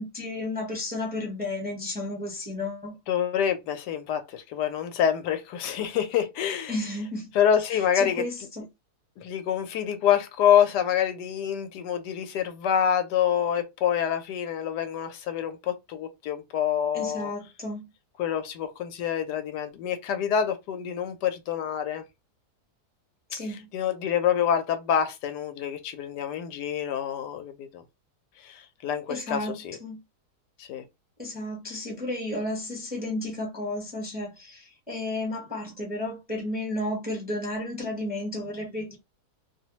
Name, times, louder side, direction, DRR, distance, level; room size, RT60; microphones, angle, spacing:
voice 1, 0.0-2.9 6.7-7.3 7.9-8.6 16.9-17.9 23.3-23.7 29.1-30.0 31.2-39.0, left 1 dB, 10° right, 0.6 m, -33 dB
voice 2, 3.1-6.7 7.3-8.2 9.2-17.3 18.2-22.0 23.4-27.8 28.4-29.8 30.6-30.8, left 9 dB, 90° left, 1.2 m, -27 dB
2.9 x 2.1 x 2.9 m
omnidirectional pair, 1.7 m